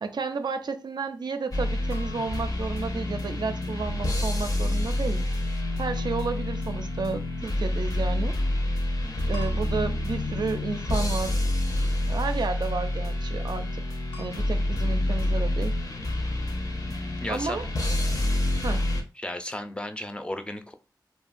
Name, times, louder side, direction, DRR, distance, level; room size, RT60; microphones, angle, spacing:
voice 1, 0.0-5.3 5.8-8.3 9.3-11.4 12.1-13.9 14.2-15.8 17.3-17.7 18.6-18.9, right 4 dB, 65° right, 0.4 m, -32 dB
sound 1, 1.5-19.0, left 1 dB, 50° left, 0.7 m, -28 dB
sound 2, 1.9-3.4 6.0-7.1 9.3-10.7 14.1-14.9, left 3 dB, 85° left, 0.7 m, -51 dB
voice 2, 17.2-17.6 19.2-20.7, left 1 dB, 15° left, 0.4 m, -34 dB
2.8 x 2.3 x 2.5 m
cardioid pair, 45°, 8 cm